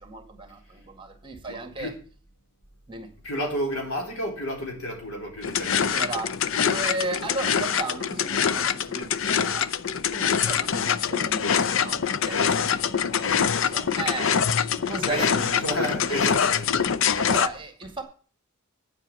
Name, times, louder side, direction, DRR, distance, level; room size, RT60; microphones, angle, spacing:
voice 1, 0.0-1.9 2.9-3.1 5.8-9.7 10.1-16.5 17.2-18.0, right 3 dB, 25° right, 1.9 m, -35 dB
voice 2, 1.5-2.0 3.2-5.9 15.0-16.8, equal, 80° left, 4.3 m, -31 dB
sound 1, 5.4-17.5, left 7 dB, 60° left, 0.6 m, -24 dB
9.7 x 7.5 x 7.6 m
head